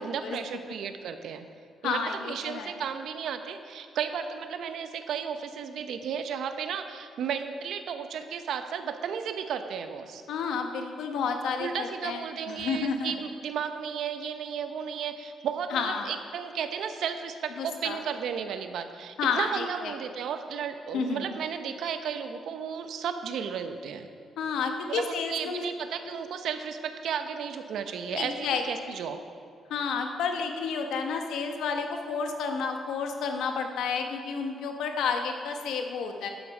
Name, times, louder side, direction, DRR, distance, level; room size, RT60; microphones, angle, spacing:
voice 1, 0.0-1.4 1.8-10.2 11.6-24.1 24.9-29.2, right 7 dB, 75° right, 8 dB, 0.8 m, -34 dB
voice 2, 1.8-2.7 10.3-13.1 15.7-16.1 17.6-18.0 19.2-19.9 20.9-21.3 24.4-25.6 26.0-26.1 28.1-28.6 29.7-36.3, left 5 dB, 90° left, 4 dB, 1.1 m, -31 dB
11.5 x 8.5 x 4.9 m, 2.3 s
cardioid pair, 115°, 0 cm